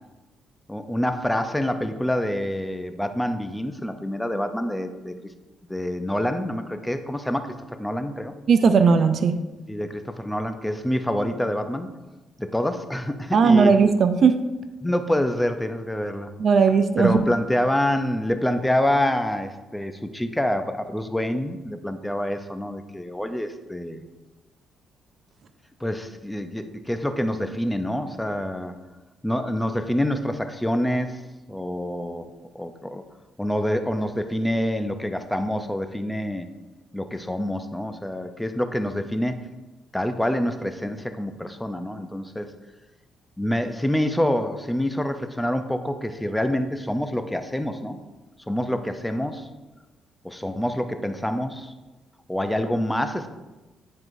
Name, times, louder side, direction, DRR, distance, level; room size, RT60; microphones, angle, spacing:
voice 1, 0.7-5.1 5.7-7.5 7.8-8.3 9.7-11.9 12.4-13.7 14.8-16.3 17.0-24.0 25.8-28.8 29.2-31.2 31.5-33.0 33.4-36.5 36.9-39.4 39.9-42.5 43.4-48.0 48.5-49.5 50.2-51.7 52.3-53.3, left 1 dB, 5° left, 8 dB, 0.5 m, -26 dB
voice 2, 8.5-9.4 13.3-14.4 16.4-17.2, right 5 dB, 55° right, 10 dB, 0.4 m, -17 dB
9.6 x 4.6 x 2.6 m, 1.1 s
cardioid pair, 90°, 0 cm